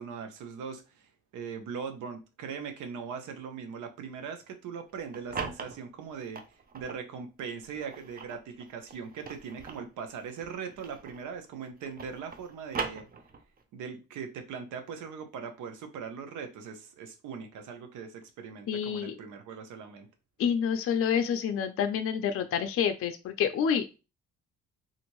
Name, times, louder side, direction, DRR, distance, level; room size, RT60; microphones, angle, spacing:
voice 1, 0.0-6.4 6.7-13.1 13.7-20.1, right 6 dB, 80° right, 0.7 m, -40 dB
sound 1, 4.9-7.0 7.6-11.4 11.6-13.6, right 5 dB, 30° right, 0.5 m, -40 dB
voice 2, 18.7-19.2 20.4-23.9, left 7 dB, 50° left, 0.4 m, -28 dB
2.6 x 2.5 x 2.9 m
cardioid pair, 90°, 30 cm